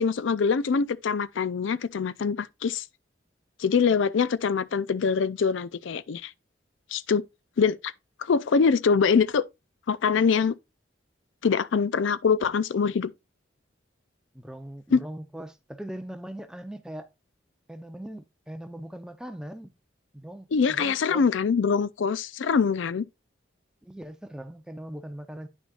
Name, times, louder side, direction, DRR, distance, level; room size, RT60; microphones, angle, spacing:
voice 1, 0.0-2.8 3.6-6.3 6.9-7.2 7.6-7.9 8.2-9.4 9.9-10.5 11.4-13.1 14.9-15.0 20.5-23.1, left 5 dB, 75° left, 0.4 m, -24 dB
voice 2, 14.3-17.1 17.7-19.7 20.1-21.3 23.8-25.5, right 1 dB, 5° right, 0.6 m, -40 dB
9.6 x 6.2 x 2.4 m
head